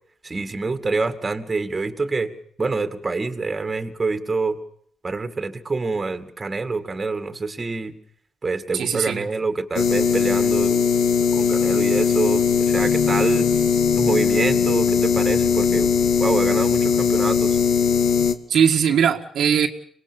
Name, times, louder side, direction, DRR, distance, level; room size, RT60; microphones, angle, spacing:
voice 1, 0.2-2.3 2.6-4.6 5.0-8.0 8.4-10.8 11.3-13.5 14.0-15.9 16.2-17.6, right 3 dB, 25° right, 8 dB, 2.2 m, -26 dB
voice 2, 8.7-9.2 18.5-19.7, right 8 dB, 65° right, 2 dB, 1.7 m, -19 dB
sound 1, 9.8-18.3, left 6 dB, 65° left, 1.7 m, -19 dB
25.5 x 19.5 x 7.0 m, 0.62 s
cardioid pair, 90°, 0 cm